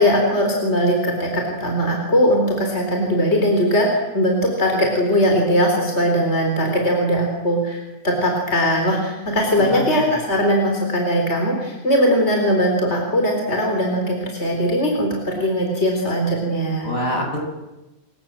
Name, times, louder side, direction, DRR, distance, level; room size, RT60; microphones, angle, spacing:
voice 1, 0.0-16.9, equal, 50° left, 1 dB, 4.6 m, -20 dB
voice 2, 9.6-10.2 16.8-17.4, left 1 dB, 80° left, 2 dB, 7.7 m, -26 dB
29.0 x 25.0 x 7.6 m, 1.0 s
omnidirectional pair, 1.4 m